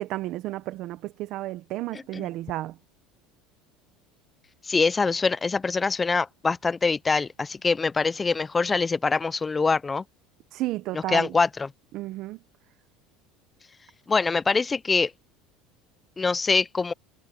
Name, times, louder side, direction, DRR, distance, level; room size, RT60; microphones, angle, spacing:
voice 1, 0.0-2.8 10.5-11.3 11.9-12.4, right 16 dB, 55° right, 0.8 m, -32 dB
voice 2, 4.6-10.0 11.1-11.7 14.1-15.1 16.2-16.9, left 4 dB, 15° left, 0.4 m, -24 dB
cardioid pair, 140°, 0 cm